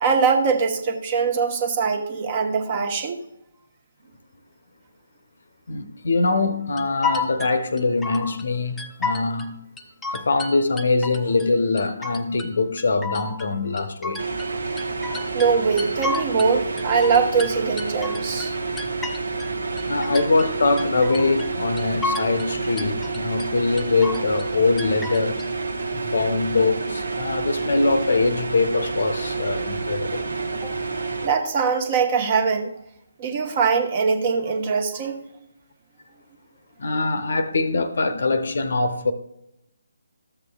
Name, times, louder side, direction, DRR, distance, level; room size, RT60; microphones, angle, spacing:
voice 1, 0.0-3.2 15.3-18.5 30.6-30.7 31.2-32.7 33.2-35.2, right 5 dB, 30° right, 1.1 m, -22 dB
voice 2, 5.7-9.6 10.1-14.2 19.9-25.4 25.9-30.2 36.8-39.1, left 3 dB, 55° left, 0.8 m, -23 dB
sound 1, 6.8-8.5 8.8-9.5 9.8-11.5 11.8-12.5 12.8-14.5 14.8-16.5 16.8-19.5 19.8-20.5 20.8-21.5 21.8-22.5 22.8-23.5 23.8-24.5 24.8-25.5, left 3 dB, 5° left, 0.6 m, -31 dB
sound 2, 14.2-31.3, right 4 dB, 65° right, 1.0 m, -29 dB
13.5 x 7.9 x 2.3 m
figure-of-eight pair, 145°, 0 cm